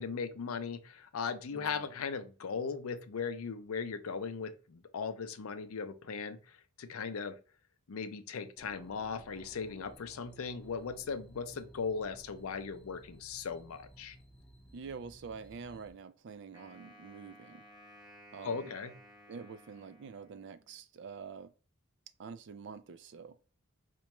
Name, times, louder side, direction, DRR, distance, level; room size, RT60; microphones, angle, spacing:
voice 1, 0.0-7.4 7.9-14.2 18.4-18.9, left 5 dB, 85° left, 0.5 m, -38 dB
voice 2, 1.5-1.9 14.7-17.6 18.3-18.7 19.3-21.5 22.2-23.4, right 5 dB, 55° right, 0.4 m, -47 dB
sound 1, 8.6-15.9, right 1 dB, 5° left, 0.5 m, -57 dB
Wind instrument woodwind instrument, 16.5-20.8, equal, 20° right, 0.9 m, -57 dB
4.3 x 2.2 x 2.9 m
head